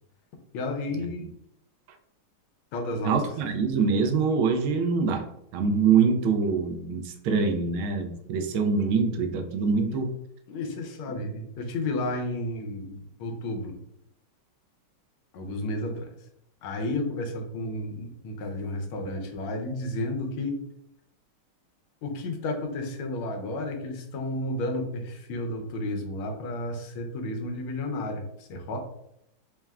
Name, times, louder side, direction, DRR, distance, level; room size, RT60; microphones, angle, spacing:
voice 1, 0.5-1.3 2.7-3.2 9.5-9.9 10.5-13.8 15.3-16.1 16.6-20.6 22.0-28.8, left 1 dB, 85° left, 3 dB, 1.6 m, -32 dB
voice 2, 3.0-5.3 5.5-10.1, right 5 dB, 85° right, 5 dB, 1.5 m, -24 dB
4.5 x 2.1 x 3.5 m, 0.77 s
omnidirectional pair, 2.3 m